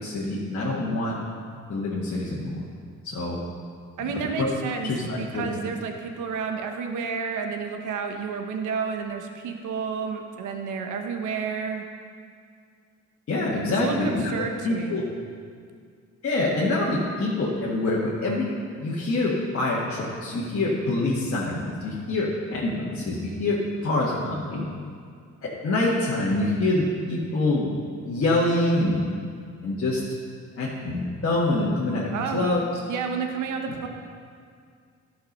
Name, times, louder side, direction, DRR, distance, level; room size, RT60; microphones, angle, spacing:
voice 1, 0.0-1.1 1.7-2.6 3.0-3.4 4.0-4.1 4.4-4.5 4.9-5.5 13.3-14.3 14.6-15.1 16.2-18.5 18.8-24.7 25.4-27.7 28.1-29.1 29.6-30.0 30.6-32.6 33.7-33.8, left 2 dB, 50° left, -6 dB, 1.8 m, -25 dB
voice 2, 4.0-4.9 5.2-11.8 13.8-15.0 32.1-32.5 32.9-33.9, right 5 dB, 80° right, 4 dB, 1.1 m, -30 dB
11.5 x 6.2 x 5.4 m, 2.2 s
cardioid pair, 90°, 30 cm